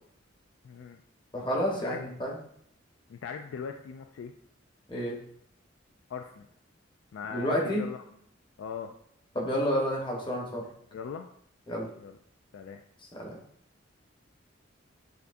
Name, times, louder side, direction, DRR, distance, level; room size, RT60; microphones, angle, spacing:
voice 1, 0.6-1.0 1.8-2.0 3.1-4.3 6.1-6.5 7.1-8.0 8.6-8.9 10.9-11.3 12.0-12.2 12.5-12.8, left 6 dB, 80° left, 5 dB, 0.3 m, -40 dB
voice 2, 1.3-2.4 4.9-5.2 7.3-7.8 9.3-10.7 11.7-11.9 13.1-13.3, equal, 25° left, -2 dB, 1.1 m, -30 dB
6.7 x 2.7 x 2.5 m, 0.67 s
head